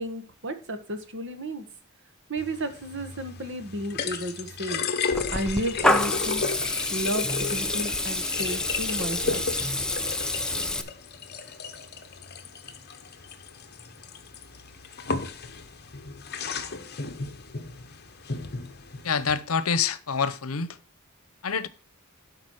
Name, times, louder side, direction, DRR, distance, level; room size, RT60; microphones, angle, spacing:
voice 1, 0.0-1.6 2.3-4.8 5.3-6.4 6.9-9.4 9.8-9.9, right 1 dB, 60° right, 1.7 m, -33 dB
sound 1, 2.4-19.4, left 5 dB, 50° left, 1.1 m, -34 dB
Water tap faucet / Liquid, 5.1-10.8, left 1 dB, 5° left, 0.7 m, -28 dB
voice 2, 19.0-20.8 21.4-21.7, left 6 dB, 90° left, 0.8 m, -26 dB
12.0 x 5.2 x 4.6 m
head